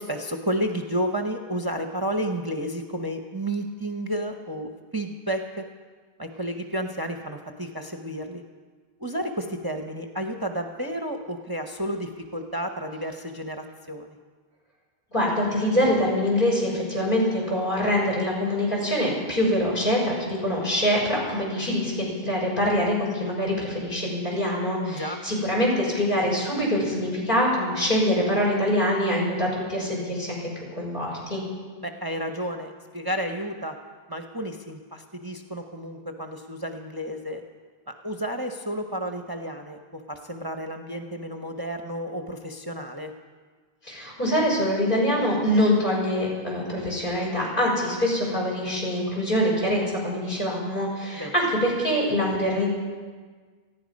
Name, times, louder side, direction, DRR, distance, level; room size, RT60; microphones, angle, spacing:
voice 1, 0.0-5.7 6.2-8.4 9.0-14.2 24.8-25.2 31.8-33.8 34.1-37.4 37.9-43.1 51.2-51.4, right 1 dB, 25° right, 4 dB, 0.8 m, -31 dB
voice 2, 15.1-30.4 30.7-31.4 43.8-52.7, equal, 55° left, -3 dB, 6.0 m, -24 dB
19.0 x 14.5 x 5.3 m, 1.5 s
omnidirectional pair, 1.0 m